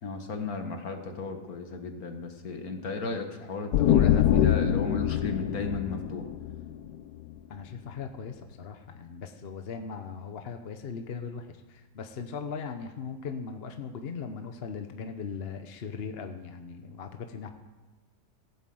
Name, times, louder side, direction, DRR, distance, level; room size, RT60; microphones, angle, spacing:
voice 1, 0.0-6.3, left 3 dB, 65° left, 5 dB, 1.9 m, -34 dB
sound 1, 3.7-7.3, left 10 dB, 85° left, 1.2 m, -24 dB
voice 2, 7.5-17.5, left 5 dB, 45° left, 6 dB, 1.0 m, -39 dB
16.5 x 8.4 x 7.8 m, 1.2 s
omnidirectional pair, 1.7 m